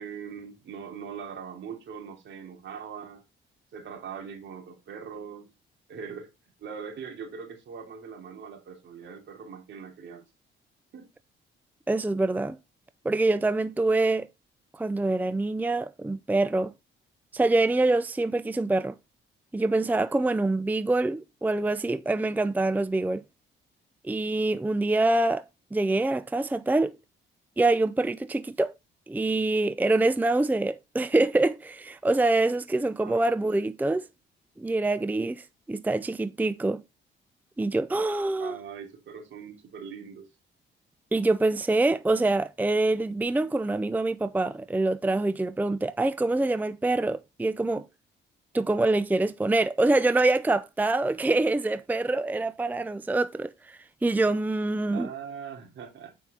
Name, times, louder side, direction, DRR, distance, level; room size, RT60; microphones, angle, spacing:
voice 1, 0.0-3.2 3.7-5.5 5.9-6.3 6.6-10.2 10.9-11.1 33.0-33.7 38.4-40.3 54.9-56.1, right 6 dB, 70° right, 3.0 m, -41 dB
voice 2, 11.9-12.6 13.0-14.3 14.7-16.7 17.3-19.0 19.5-23.2 24.0-25.4 25.7-27.0 27.6-28.7 29.1-34.1 34.6-36.8 37.6-38.6 41.1-47.8 48.5-55.1, right 2 dB, 10° right, 0.5 m, -25 dB
8.9 x 5.4 x 4.3 m
cardioid pair, 90°, 20 cm